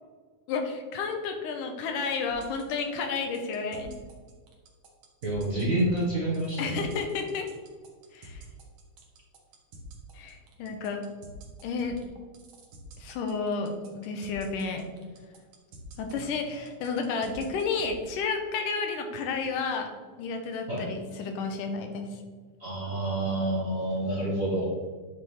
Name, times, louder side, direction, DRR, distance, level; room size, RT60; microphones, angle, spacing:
voice 1, 0.5-3.9 6.6-7.5 8.1-8.5 10.1-11.1 11.6-12.0 13.0-14.8 16.0-19.9 20.2-22.2, left 4 dB, 90° left, 4 dB, 2.6 m, -31 dB
sound 1, 2.3-18.0, right 4 dB, 60° right, 2.1 m, -49 dB
voice 2, 5.2-6.9 20.7-20.9 22.6-24.7, right 1 dB, 35° right, -7 dB, 1.4 m, -28 dB
9.7 x 6.0 x 3.5 m, 1.5 s
omnidirectional pair, 3.7 m